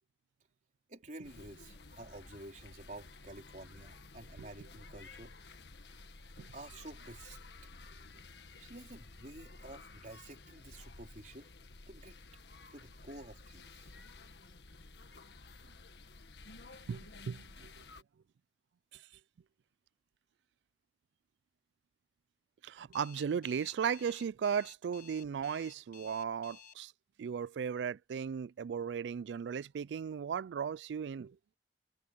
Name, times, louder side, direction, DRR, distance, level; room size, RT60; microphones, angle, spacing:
voice 1, 0.9-5.4 6.5-7.5 8.6-11.5 11.9-12.2 12.7-13.9, right 1 dB, 45° right, 4.5 m, -50 dB
sound 1, 1.2-18.0, left 3 dB, 75° left, 1.5 m, -53 dB
voice 2, 16.9-17.7 22.6-26.9 27.2-31.3, right 7 dB, 85° right, 0.3 m, -36 dB
Alarm, 22.9-26.7, left 6 dB, 55° left, 6.4 m, -55 dB
head